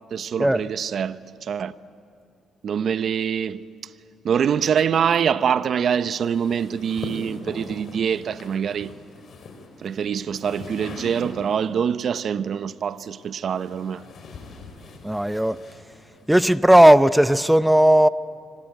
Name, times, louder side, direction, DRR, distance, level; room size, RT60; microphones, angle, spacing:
voice 1, 0.1-1.7 2.6-3.6 4.2-8.9 9.8-14.0, right 7 dB, 60° right, 0.7 m, -24 dB
sound 1, 6.1-11.8 12.8-16.4, left 3 dB, 55° left, 4.6 m, -42 dB
voice 2, 15.0-15.6 16.3-18.1, right 1 dB, 5° right, 0.6 m, -15 dB
26.0 x 25.5 x 9.0 m
cardioid pair, 90°, 0 cm